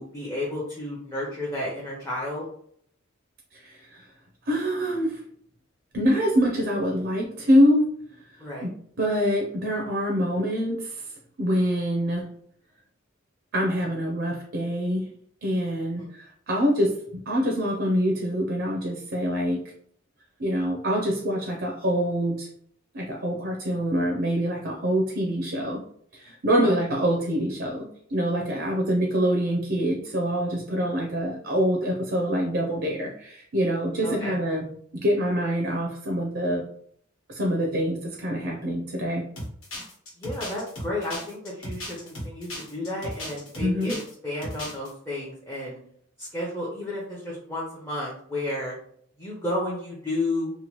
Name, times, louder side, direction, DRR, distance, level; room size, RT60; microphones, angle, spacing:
voice 1, 0.0-2.4 8.4-8.7 15.9-16.1 26.6-26.7 34.0-34.3 40.2-44.0 44.2-45.8 46.2-48.7 49.2-50.5, left 1 dB, 15° left, -5 dB, 0.6 m, -32 dB
voice 2, 3.6-4.1 4.4-5.2 5.9-7.9 8.6-8.7 9.0-11.1 11.4-12.3 13.5-15.0 15.4-19.6 20.4-22.5 22.9-25.8 26.1-34.7 34.9-36.6 37.3-39.2 43.6-43.9, equal, 55° right, 0 dB, 0.5 m, -25 dB
sound 1, 39.4-44.1 44.4-44.9, left 1 dB, 90° left, 1.3 m, -36 dB
2.9 x 2.2 x 2.9 m, 0.65 s
head